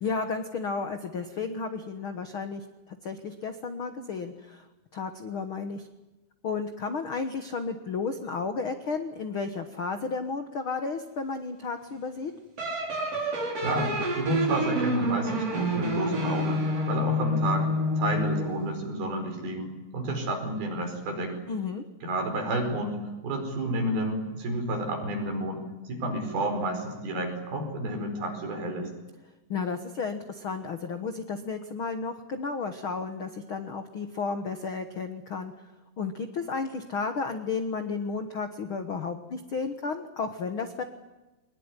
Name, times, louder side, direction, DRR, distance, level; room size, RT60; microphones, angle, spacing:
voice 1, 0.0-4.6 4.9-5.9 6.4-12.3 21.5-21.8 29.5-35.5 36.0-40.8, left 4 dB, 65° left, 7 dB, 1.3 m, -33 dB
sound 1, 12.6-18.6, equal, 40° right, 5.2 m, -28 dB
voice 2, 13.5-16.6 16.9-17.7 18.0-21.3 22.0-23.0 23.2-25.6 25.9-28.9, right 1 dB, 75° right, 4 dB, 6.7 m, -30 dB
23.0 x 21.0 x 9.8 m, 1.1 s
omnidirectional pair, 4.4 m